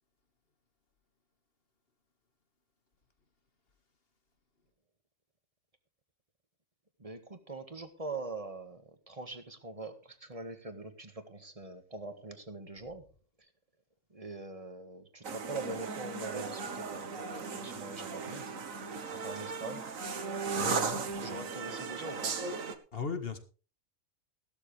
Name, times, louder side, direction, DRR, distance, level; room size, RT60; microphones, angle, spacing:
voice 1, 7.0-13.0 14.1-18.4 19.1-19.9 20.8-22.4, right 3 dB, 25° right, 1.8 m, -43 dB
sound 1, 15.2-22.7, right 5 dB, 75° right, 1.8 m, -37 dB
voice 2, 20.4-21.4 22.9-23.4, left 5 dB, 45° left, 1.9 m, -38 dB
16.0 x 12.5 x 3.4 m
omnidirectional pair, 1.4 m